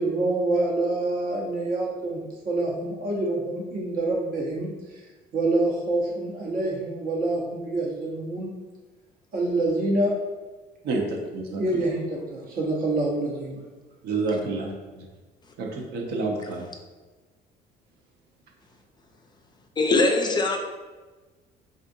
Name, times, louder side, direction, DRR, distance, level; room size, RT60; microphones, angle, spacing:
voice 1, 0.0-5.0 5.3-8.5 9.3-10.1 11.6-13.6, right 2 dB, 60° right, -2 dB, 1.0 m, -26 dB
voice 2, 10.8-11.6 14.0-14.7 15.6-16.6, right 3 dB, 75° right, 0 dB, 0.7 m, -28 dB
voice 3, 19.8-20.6, left 3 dB, 25° left, 3 dB, 0.3 m, -21 dB
3.7 x 2.5 x 2.6 m, 1.3 s
cardioid pair, 110°, 17 cm